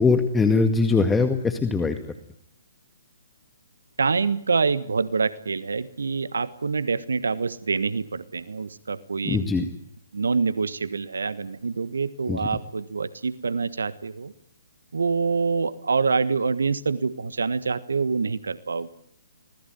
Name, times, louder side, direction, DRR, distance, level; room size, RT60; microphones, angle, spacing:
voice 1, 0.0-1.9 9.3-9.7 12.3-12.4, left 4 dB, 10° left, 7 dB, 2.0 m, -21 dB
voice 2, 4.0-9.6 10.1-14.3 14.9-18.9, right 4 dB, 75° right, 15 dB, 1.5 m, -26 dB
25.5 x 19.5 x 9.3 m, 0.66 s
figure-of-eight pair, 135°, 0 cm